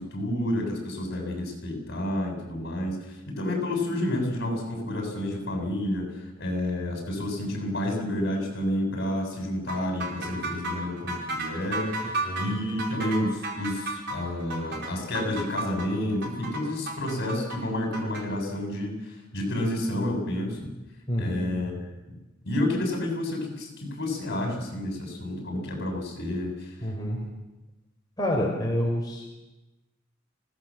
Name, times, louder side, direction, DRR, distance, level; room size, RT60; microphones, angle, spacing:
voice 1, 0.0-11.9 12.4-20.7 21.2-21.9 22.4-26.9, left 1 dB, 60° left, 2 dB, 7.8 m, -30 dB
sound 1, 9.7-18.2, right 2 dB, 60° right, 4.7 m, -33 dB
voice 2, 21.1-21.5 26.8-27.2 28.2-29.3, equal, 20° left, -1 dB, 4.5 m, -28 dB
25.5 x 18.0 x 7.7 m, 1.1 s
head